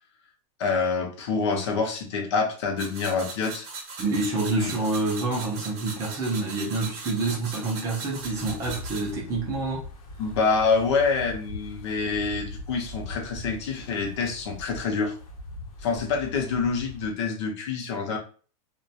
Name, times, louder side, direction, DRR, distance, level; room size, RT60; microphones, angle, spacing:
voice 1, 0.6-3.7 4.6-4.7 10.2-15.2 15.8-18.2, left 4 dB, 50° left, 0.7 m, -26 dB
sound 1, 2.8-9.1, right 4 dB, 40° right, 0.8 m, -39 dB
voice 2, 4.0-9.9, right 3 dB, 15° right, 0.5 m, -27 dB
Wind, 8.0-17.1, left 2 dB, 85° left, 0.8 m, -41 dB
2.3 x 2.2 x 2.7 m
supercardioid pair, 175°, 19 cm